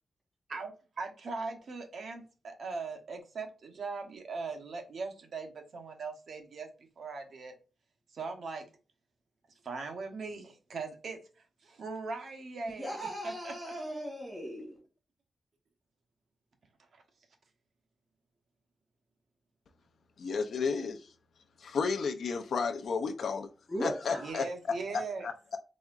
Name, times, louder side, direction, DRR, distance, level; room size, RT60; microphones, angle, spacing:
voice 1, 0.5-6.7 7.0-7.5 8.1-8.7 9.6-11.2 11.6-13.0 13.2-13.5 16.9-17.0 24.2-25.3, right 4 dB, 70° right, 1.0 m, -40 dB
voice 2, 12.8-14.8 23.7-24.4, equal, 5° right, 2.1 m, -37 dB
voice 3, 20.2-21.0 21.6-23.5 23.8-24.5 25.2-25.6, left 5 dB, 75° left, 0.4 m, -32 dB
4.1 x 3.5 x 2.4 m
wide cardioid pair, 110°, 0 cm